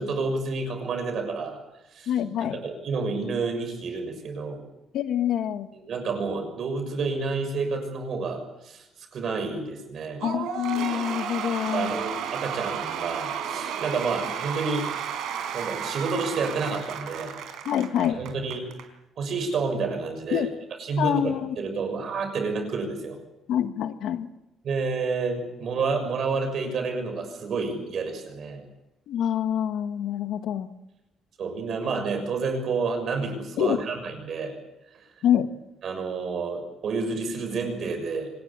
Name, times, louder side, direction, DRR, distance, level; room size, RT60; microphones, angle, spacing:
voice 1, 0.0-1.6 1.9-2.1 2.4-4.6 5.7-8.9 9.1-10.2 11.7-14.9 15.5-17.3 18.1-18.6 19.2-20.5 20.8-23.2 24.6-28.6 31.4-34.5 34.9-35.0 35.8-38.3, right 4 dB, 45° right, 5 dB, 6.4 m, -29 dB
voice 2, 2.1-2.6 4.9-5.7 10.2-11.9 17.6-18.2 20.3-20.5 21.0-21.6 23.5-24.3 29.1-30.7 33.6-33.8 35.2-35.5, left 10 dB, 65° left, 9 dB, 1.6 m, -26 dB
Cheering / Applause / Crowd, 10.2-18.8, right 8 dB, 70° right, 4.2 m, -33 dB
25.5 x 19.5 x 8.6 m, 0.93 s
cardioid pair, 180°, 0 cm